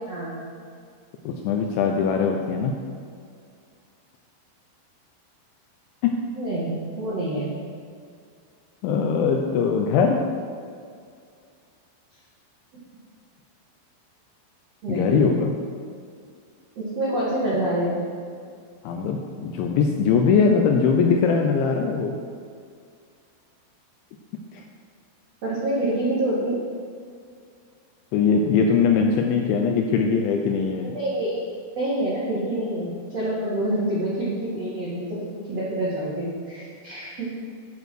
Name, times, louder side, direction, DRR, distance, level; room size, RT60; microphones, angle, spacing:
voice 1, 0.1-0.4 6.3-7.5 14.8-15.2 16.7-18.0 25.4-26.6 30.8-31.4 31.7-37.4, right 1 dB, 70° right, -7 dB, 1.6 m, -27 dB
voice 2, 1.2-2.7 6.0-6.2 8.8-10.2 14.9-15.5 18.8-22.2 24.5-24.6 28.1-30.9, left 5 dB, 80° left, 2 dB, 2.7 m, -21 dB
11.0 x 7.1 x 6.2 m, 2.2 s
omnidirectional pair, 6.0 m